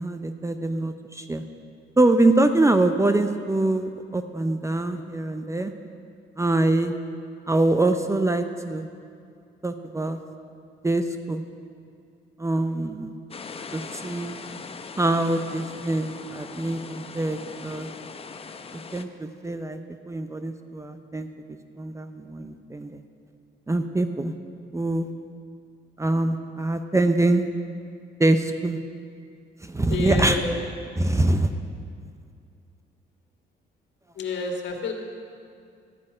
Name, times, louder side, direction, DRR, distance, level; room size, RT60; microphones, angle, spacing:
voice 1, 0.0-1.4 2.0-5.7 6.4-6.9 7.5-8.9 9.6-10.2 10.8-11.4 12.4-13.2 13.7-14.4 15.0-17.9 18.9-19.8 20.1-21.3 21.8-23.0 23.7-24.3 24.7-25.1 26.0-27.5 28.2-28.8 29.6-30.4 31.0-31.5, right 2 dB, 15° right, 8 dB, 0.6 m, -24 dB
sound 1, 13.3-19.0, left 5 dB, 30° left, 0.6 m, -40 dB
voice 2, 29.9-30.5 34.1-34.9, left 3 dB, 65° left, 2 dB, 1.8 m, -29 dB
13.0 x 5.4 x 8.7 m, 2.3 s
cardioid pair, 90°, 20 cm